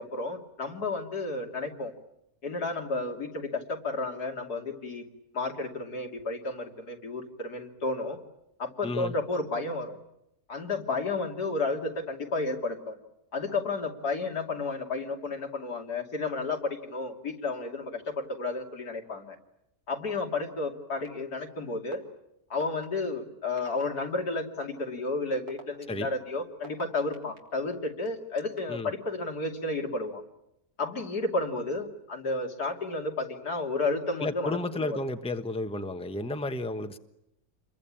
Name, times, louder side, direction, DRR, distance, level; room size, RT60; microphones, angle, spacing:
voice 1, 0.0-1.9 2.4-5.0 5.3-8.2 8.6-10.0 10.5-13.0 13.3-19.4 19.9-22.0 22.5-30.2 30.8-35.0, left 3 dB, 90° left, 2 dB, 3.3 m, -32 dB
voice 2, 8.8-9.1 25.9-26.1 28.7-28.9 34.2-37.0, left 2 dB, 5° left, 7 dB, 1.1 m, -32 dB
sound 1, 21.0-21.1 21.9-22.0 22.6-22.9 23.6-23.8 24.6-24.7 25.3-27.4 28.1-28.8, right 2 dB, 90° right, 4.0 m, -46 dB
28.5 x 22.5 x 8.8 m, 0.83 s
omnidirectional pair, 1.6 m